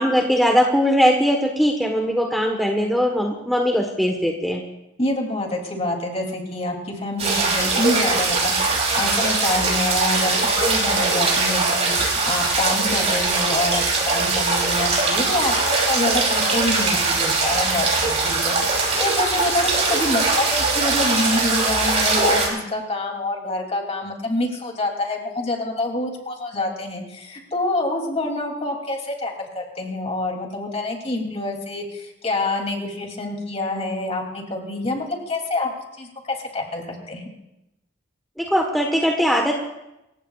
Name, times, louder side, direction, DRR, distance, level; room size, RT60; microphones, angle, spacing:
voice 1, 0.0-4.6 38.4-39.5, equal, ahead, 1 dB, 1.2 m, -20 dB
voice 2, 5.0-35.7 36.0-36.1 36.5-37.2, left 2 dB, 35° left, 1 dB, 2.9 m, -26 dB
sound 1, 7.2-22.5, right 3 dB, 35° right, 5.7 m, -21 dB
27.5 x 15.5 x 2.4 m, 0.91 s
head